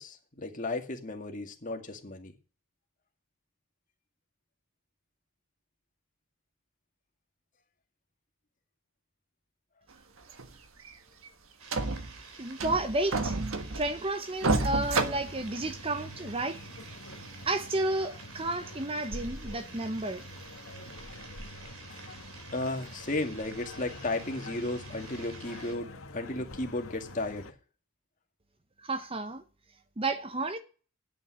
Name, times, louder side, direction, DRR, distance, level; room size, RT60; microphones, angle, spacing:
voice 1, 0.0-2.3 22.5-27.5, left 2 dB, 35° left, 2.1 m, -34 dB
sound 1, 10.3-10.5 10.9-11.0 11.3-11.4 11.7-12.2 12.6-14.1 14.4-16.0 16.5-16.6 17.2-17.3, right 3 dB, 70° right, 1.4 m, -30 dB
sound 2, 11.6-25.7, right 4 dB, 85° right, 3.1 m, -50 dB
voice 2, 12.4-13.4 13.7-16.6 17.5-20.2 28.8-29.4 30.0-30.6, right 2 dB, 25° right, 0.8 m, -31 dB
sound 3, 14.8-27.5, left 1 dB, 70° left, 1.7 m, -46 dB
10.5 x 9.0 x 7.7 m
head